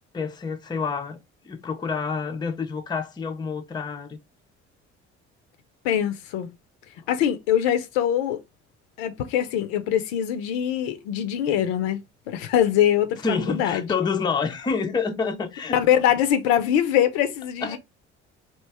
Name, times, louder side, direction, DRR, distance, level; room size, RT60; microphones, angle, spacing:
voice 1, 0.1-1.2 1.4-4.2 13.2-15.8 17.6-17.8, left 5 dB, 10° left, 0.5 m, -28 dB
voice 2, 5.8-6.5 7.1-8.4 9.0-12.0 12.3-13.9 15.7-17.8, left 10 dB, 60° left, 0.6 m, -23 dB
3.0 x 2.7 x 3.3 m
figure-of-eight pair, 50°, 35 cm